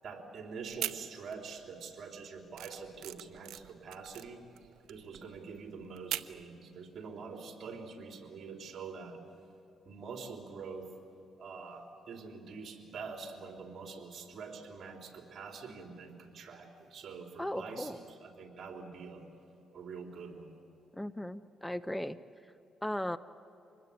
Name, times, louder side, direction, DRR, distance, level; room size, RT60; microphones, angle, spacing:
voice 1, 0.0-4.4 4.9-9.2 9.8-10.9 11.4-19.3 19.7-20.6, right 5 dB, 55° right, 2 dB, 3.9 m, -45 dB
sound 1, 0.6-1.6 1.9-6.4, right 13 dB, 85° right, 0.7 m, -41 dB
voice 2, 17.4-18.0 20.9-22.2 22.8-23.2, left 1 dB, 5° left, 13 dB, 0.6 m, -36 dB
26.5 x 20.5 x 8.8 m, 2.7 s
cardioid pair, 90°, 0 cm